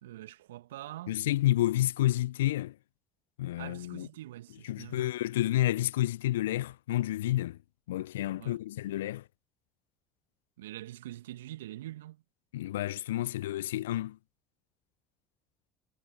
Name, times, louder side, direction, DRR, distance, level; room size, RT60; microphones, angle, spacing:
voice 1, 0.0-1.2 3.6-5.1 8.4-8.6 10.6-12.2, right 14 dB, 75° right, 2.4 m, -44 dB
voice 2, 1.1-2.7 3.4-4.1 4.6-7.6 7.9-9.2 12.5-14.2, left 14 dB, 75° left, 0.8 m, -30 dB
figure-of-eight pair, 55°, 0 cm